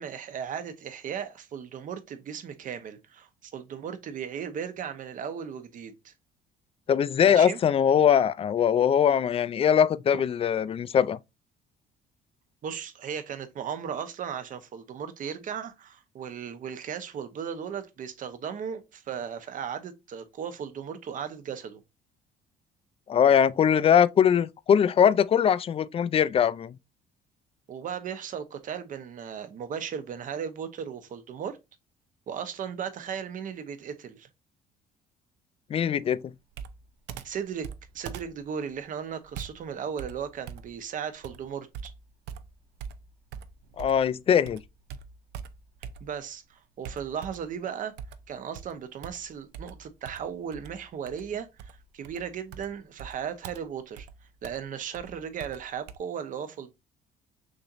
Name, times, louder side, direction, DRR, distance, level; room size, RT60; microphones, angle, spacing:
voice 1, 0.0-6.1 7.2-7.6 12.6-21.8 27.7-31.6 32.3-34.3 37.2-37.7 37.9-41.9 46.0-47.9 48.3-54.1 54.4-56.7, right 7 dB, 50° right, 0.9 m, -36 dB
voice 2, 6.9-11.2 23.1-26.7 35.7-36.3 43.8-44.6, left 8 dB, 35° left, 0.4 m, -22 dB
Computer keyboard, 36.5-44.1 44.5-46.4 46.8-47.6 48.0-56.0, right 7 dB, 80° right, 0.6 m, -44 dB
6.3 x 3.0 x 2.5 m
cardioid pair, 110°, 17 cm